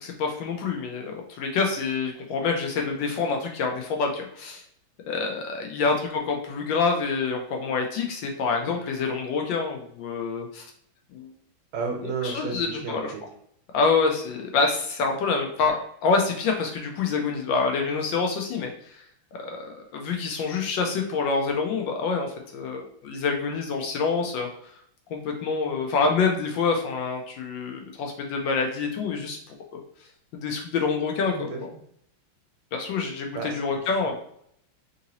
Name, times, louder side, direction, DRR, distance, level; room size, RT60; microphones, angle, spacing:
voice 1, 0.0-4.6 5.1-10.7 11.1-11.3 12.0-13.1 13.7-19.0 19.4-24.5 25.1-29.4 29.7-29.8 30.4-31.7 32.7-34.1, left 4 dB, 75° left, 2 dB, 1.1 m, -27 dB
voice 2, 11.7-13.2 31.3-31.6 33.3-33.6 34.0-34.1, right 4 dB, 75° right, 2 dB, 1.6 m, -32 dB
3.8 x 2.6 x 2.8 m, 0.68 s
omnidirectional pair, 2.4 m